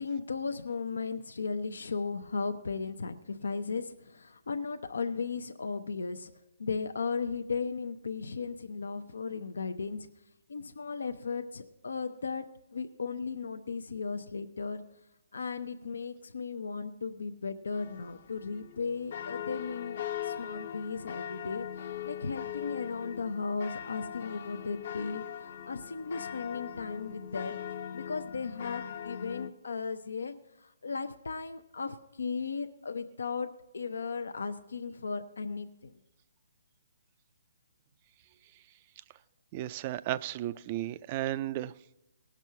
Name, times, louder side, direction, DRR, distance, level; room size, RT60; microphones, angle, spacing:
voice 1, 0.0-6.3 6.6-10.1 10.5-12.4 12.7-14.8 15.3-20.0 20.2-27.6 27.9-30.3 30.6-35.9, left 5 dB, 85° left, 0.6 m, -36 dB
sound 1, 17.7-29.5, left 9 dB, 55° left, 0.8 m, -40 dB
voice 2, 39.5-41.7, right 14 dB, 30° right, 0.3 m, -34 dB
18.0 x 6.1 x 5.6 m
hypercardioid pair, 160°, 0 cm